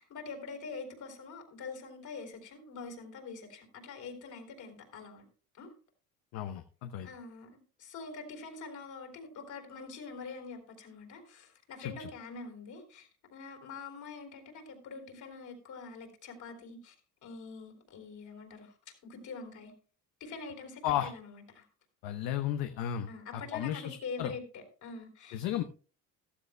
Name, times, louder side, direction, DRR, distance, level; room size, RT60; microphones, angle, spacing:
voice 1, 0.0-5.2 5.5-5.7 7.0-7.5 7.8-17.0 17.2-18.8 19.0-19.7 20.2-21.7 23.1-25.4, left 4 dB, 50° left, 4.0 m, -45 dB
voice 2, 6.3-7.1 11.8-12.1 20.8-21.1 22.0-24.3 25.3-25.6, left 11 dB, 70° left, 1.0 m, -34 dB
14.5 x 12.5 x 2.2 m
supercardioid pair, 100°, 37 cm